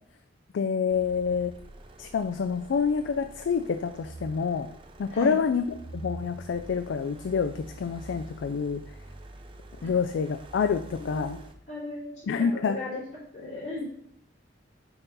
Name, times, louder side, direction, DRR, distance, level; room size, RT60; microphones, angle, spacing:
voice 1, 0.5-1.5 2.0-4.7 5.0-8.8 9.8-11.4 12.3-12.8, left 6 dB, 75° left, 8 dB, 0.4 m, -27 dB
sound 1, 0.9-11.5, right 2 dB, 30° right, 0.5 m, -46 dB
voice 2, 10.9-11.3 11.7-12.1 12.5-13.0 13.3-13.9, left 2 dB, 35° left, -12 dB, 3.0 m, -35 dB
6.0 x 4.0 x 5.3 m, 0.67 s
head